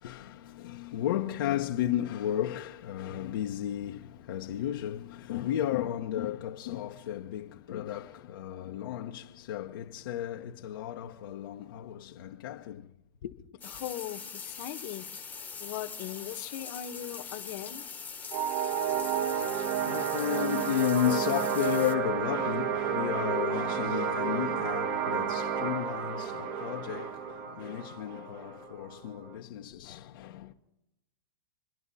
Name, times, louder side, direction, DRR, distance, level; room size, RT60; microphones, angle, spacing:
voice 1, 0.0-12.9 13.2-13.3 19.9-30.5, left 12 dB, 65° left, 1.1 m, -33 dB
voice 2, 13.6-15.3 15.6-17.9 28.0-28.1, left 13 dB, 50° left, 1.4 m, -39 dB
sound 1, 13.6-21.9, left 5 dB, 10° left, 1.3 m, -42 dB
sound 2, 18.3-29.4, right 7 dB, 40° right, 1.5 m, -31 dB
27.5 x 11.0 x 4.2 m
hypercardioid pair, 130°, 12 cm